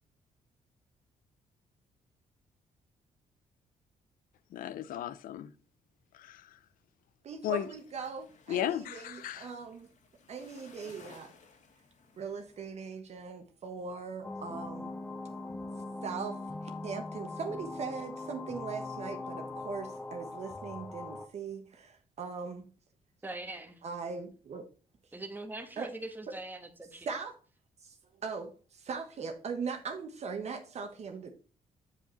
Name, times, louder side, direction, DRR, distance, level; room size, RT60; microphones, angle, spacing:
voice 1, 4.5-5.5 6.1-6.5 7.4-7.7 8.5-9.5, left 11 dB, 85° left, 0.6 m, -35 dB
voice 2, 7.2-9.9 10.3-11.3 12.2-14.9 16.0-16.4 16.8-22.7 23.8-24.6 25.8-25.9 27.0-27.3 27.8-28.0 28.2-31.3, right 5 dB, 50° right, 1.2 m, -40 dB
sound 1, 7.5-12.7, left 4 dB, 60° left, 1.9 m, -58 dB
sound 2, 14.2-21.3, left 3 dB, 15° left, 0.5 m, -41 dB
voice 3, 23.2-23.8 25.1-27.1, right 2 dB, 15° right, 1.3 m, -42 dB
8.3 x 5.2 x 4.0 m
cardioid pair, 125°, 14 cm